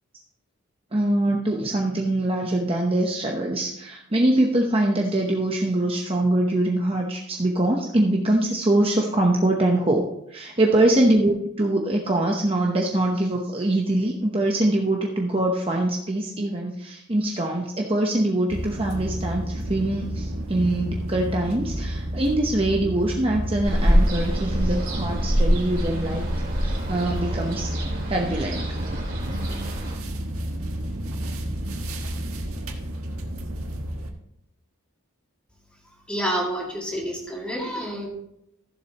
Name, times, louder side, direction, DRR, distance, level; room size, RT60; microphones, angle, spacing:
voice 1, 0.9-10.0 10.3-26.3 26.6-28.7 31.5-31.7, right 1 dB, 25° right, 0 dB, 0.9 m, -23 dB
sound 1, 18.5-34.1, right 1 dB, 80° right, 1.5 m, -31 dB
Ocean, 23.6-29.9, equal, 40° right, 2.8 m, -25 dB
voice 2, 36.1-38.1, equal, 5° left, -2 dB, 2.1 m, -28 dB
15.0 x 7.4 x 2.9 m, 0.81 s
head